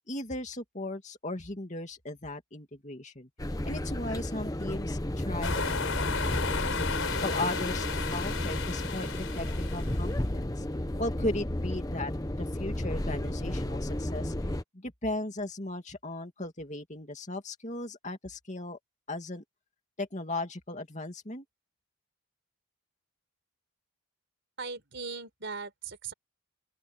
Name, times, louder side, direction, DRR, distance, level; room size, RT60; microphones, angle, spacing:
voice 1, 0.1-3.3 3.6-6.9 7.2-10.6 11.0-12.1 12.4-14.3 14.7-18.8 19.1-19.4 20.0-21.4, left 2 dB, 35° left, 2.5 m, -37 dB
sound 1, 3.4-14.6, left 1 dB, 15° left, 0.8 m, -33 dB
sound 2, 5.4-10.2, left 5 dB, 65° left, 4.9 m, -34 dB
voice 2, 24.6-26.1, right 4 dB, 55° right, 4.8 m, -39 dB
open air
head